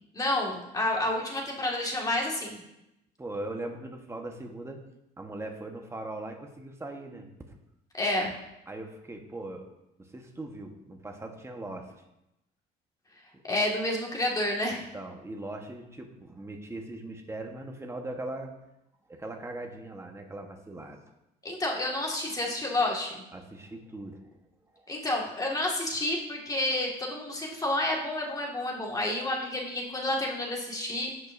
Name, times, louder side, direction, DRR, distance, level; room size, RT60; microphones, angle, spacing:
voice 1, 0.1-2.6 7.9-8.3 13.4-14.8 21.4-23.2 24.9-31.3, left 1 dB, 20° left, -1 dB, 1.9 m, -30 dB
voice 2, 3.2-4.8 5.2-7.3 8.7-9.7 10.0-11.9 13.3-13.4 14.7-18.5 19.1-21.0 23.3-24.2 24.7-24.9, right 2 dB, 15° right, 3 dB, 1.2 m, -40 dB
16.0 x 5.4 x 2.6 m, 0.88 s
cardioid pair, 110°, 17 cm